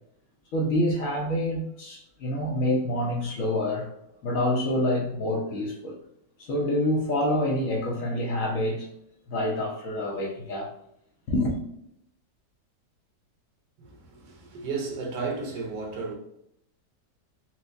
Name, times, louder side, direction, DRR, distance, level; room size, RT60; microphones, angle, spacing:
voice 1, 0.5-3.9 4.2-6.0 6.4-8.9 9.3-10.7 11.3-11.6, left 1 dB, 65° left, 0.8 m, -27 dB
voice 2, 14.5-16.1, right 4 dB, 80° right, 1.4 m, -32 dB
4.3 x 2.0 x 2.5 m
omnidirectional pair, 1.9 m